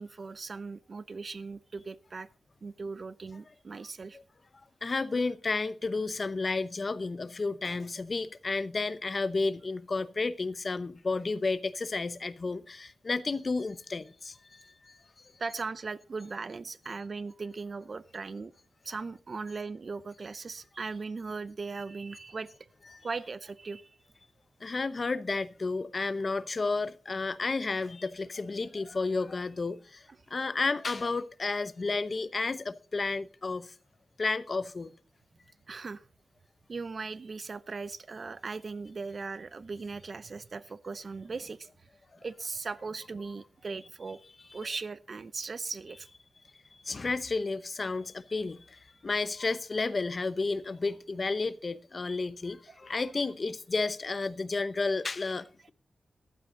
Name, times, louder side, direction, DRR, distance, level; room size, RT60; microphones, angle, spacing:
voice 1, 0.0-2.3 2.6-4.2 15.4-18.5 18.8-22.5 23.0-23.9 35.7-36.1 36.7-41.9 42.2-44.2 44.5-46.1 52.7-52.8, right 4 dB, 50° right, 0.8 m, -38 dB
voice 2, 4.8-15.3 22.9-23.0 24.6-30.0 30.3-33.7 34.2-34.9 44.6-44.8 46.8-55.7, left 3 dB, 45° left, 0.8 m, -32 dB
14.5 x 12.0 x 3.9 m
wide cardioid pair, 95°, 0 cm